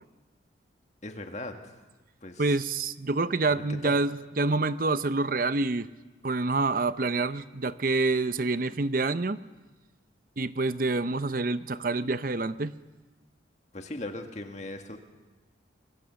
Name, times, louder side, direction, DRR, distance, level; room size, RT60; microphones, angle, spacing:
voice 1, 1.0-1.8 2.2-2.6 3.5-4.2 13.7-15.0, left 2 dB, 40° left, 5 dB, 1.9 m, -39 dB
voice 2, 2.4-5.9 6.2-9.4 10.4-12.7, right 3 dB, 50° right, 13 dB, 0.7 m, -27 dB
25.5 x 22.0 x 7.1 m, 1.2 s
head